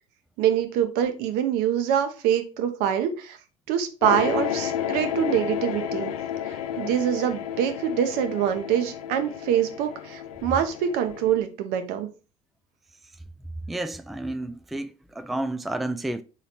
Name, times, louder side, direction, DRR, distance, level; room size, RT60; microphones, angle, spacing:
voice 1, 0.4-3.4 3.7-6.1 6.4-12.1, right 9 dB, 60° right, 0.8 m, -25 dB
sound 1, 4.0-11.4, left 10 dB, 75° left, 0.4 m, -32 dB
voice 2, 13.7-16.2, right 1 dB, ahead, 0.3 m, -31 dB
4.0 x 3.0 x 4.1 m
hypercardioid pair, 65°, 18 cm